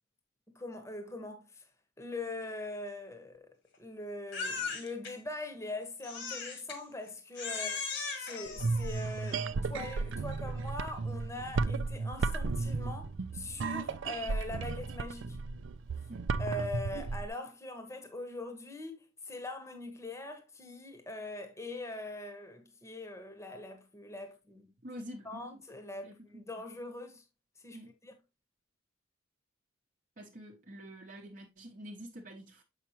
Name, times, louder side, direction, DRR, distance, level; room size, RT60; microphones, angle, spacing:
voice 1, 0.5-1.6 2.0-3.5 3.8-7.8 8.2-15.4 16.4-19.0 19.2-24.7 25.2-27.2 27.6-27.8, left 2 dB, 15° left, 1.1 m, -42 dB
Crying sobbing, 4.3-5.1 6.0-6.8 7.3-9.5, left 5 dB, 60° left, 1.7 m, -38 dB
sound 1, 8.5-17.3, right 4 dB, 65° right, 0.4 m, -34 dB
voice 2, 24.8-25.5 26.0-26.6 27.7-27.9 30.2-32.6, equal, 45° right, 0.9 m, -47 dB
7.2 x 5.7 x 3.0 m
head